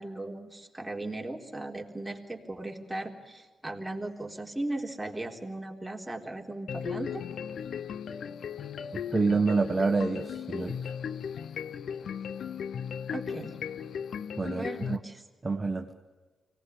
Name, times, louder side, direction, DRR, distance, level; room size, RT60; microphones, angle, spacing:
voice 1, 0.0-7.2 13.1-13.6 14.5-15.2, right 2 dB, 10° right, 1 dB, 3.8 m, -37 dB
sound 1, 6.7-15.0, left 8 dB, 65° left, 0.7 m, -37 dB
voice 2, 9.1-10.9 14.4-15.0 15.4-15.9, right 4 dB, 30° right, 4 dB, 1.4 m, -27 dB
24.0 x 18.0 x 8.5 m, 1.3 s
hypercardioid pair, 40°, 0 cm